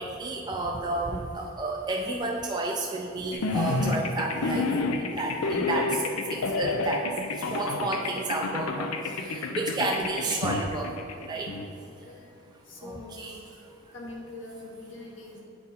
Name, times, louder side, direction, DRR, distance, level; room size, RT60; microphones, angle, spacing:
voice 1, 0.0-7.1 7.3-10.9 11.3-11.5 12.8-13.3, right 2 dB, 20° right, -1 dB, 0.3 m, -31 dB
sound 1, 3.3-11.7, left 3 dB, 90° left, 0.5 m, -29 dB
voice 2, 11.8-12.3 12.7-13.4 13.9-15.4, left 2 dB, 65° left, -2 dB, 1.2 m, -43 dB
8.5 x 4.1 x 4.2 m, 2.5 s
head